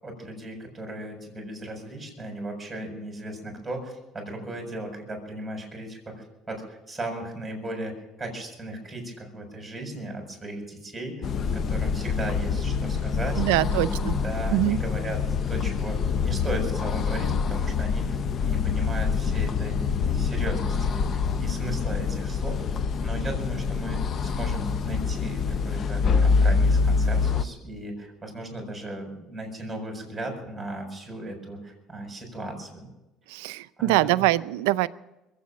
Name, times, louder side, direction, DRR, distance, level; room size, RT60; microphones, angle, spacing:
voice 1, 0.0-11.3 11.5-15.2 15.5-16.0 16.2-22.6 23.0-32.9 33.8-34.2, right 1 dB, 10° right, 1 dB, 7.1 m, -36 dB
sound 1, 11.2-27.4, left 5 dB, 45° left, 0.7 m, -26 dB
voice 2, 13.4-14.2 14.5-14.8 33.3-34.9, right 18 dB, 90° right, 15 dB, 0.5 m, -23 dB
22.5 x 8.4 x 7.3 m, 0.98 s
supercardioid pair, 100°, 0 cm